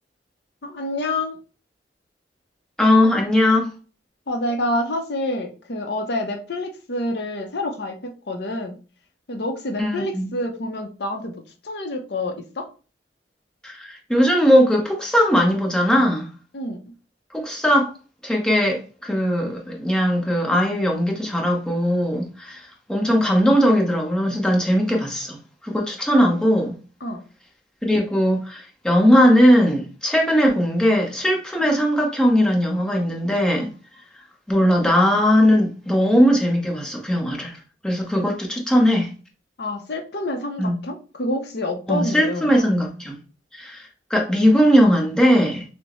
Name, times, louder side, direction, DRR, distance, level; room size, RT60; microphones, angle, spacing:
voice 1, 0.6-1.4 4.3-8.8 9.3-11.4 11.6-12.7 16.5-16.9 27.0-27.2 39.6-42.6, left 1 dB, 65° left, 0.7 m, -27 dB
voice 2, 2.8-3.7 9.8-10.3 13.6-16.3 17.3-17.9 18.2-25.4 25.6-26.7 27.8-33.7 34.5-37.6 37.8-39.1 40.6-40.8 41.9-43.2 43.5-45.6, equal, 5° left, 0.9 m, -19 dB
6.2 x 2.1 x 3.0 m
head